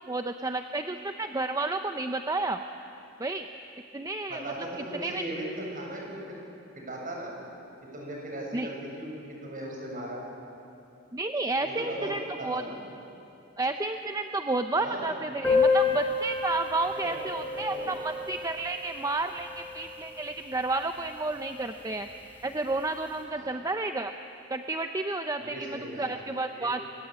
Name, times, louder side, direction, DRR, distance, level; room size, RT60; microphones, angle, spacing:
voice 1, 0.0-2.6 3.2-3.5 3.9-4.5 4.9-5.2 8.5-8.7 11.1-12.6 13.6-22.1 22.4-24.1 24.5-26.8, right 2 dB, 20° right, 6 dB, 0.7 m, -31 dB
voice 2, 4.3-6.4 6.7-7.4 7.8-10.2 11.6-12.8 14.7-15.2 17.0-17.9 23.3-23.5 25.4-26.1 26.5-26.7, right 1 dB, 45° right, -1 dB, 7.4 m, -38 dB
Piano, 15.4-20.8 21.1-21.2 21.4-21.5 21.9-22.0 22.7-22.9, left 4 dB, 10° left, 4.9 m, -29 dB
27.0 x 22.0 x 8.9 m, 2.7 s
head